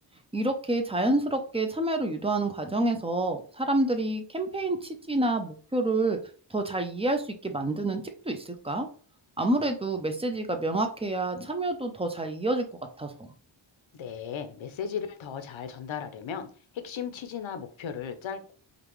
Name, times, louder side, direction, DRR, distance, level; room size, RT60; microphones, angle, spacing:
voice 1, 0.3-6.2 6.5-8.9 9.4-12.6 13.0-13.1, right 2 dB, 15° right, 5 dB, 0.5 m, -28 dB
voice 2, 13.9-16.5 16.7-18.5, left 7 dB, 70° left, 8 dB, 0.8 m, -36 dB
5.2 x 2.4 x 3.1 m, 0.41 s
wide cardioid pair, 125°, 48 cm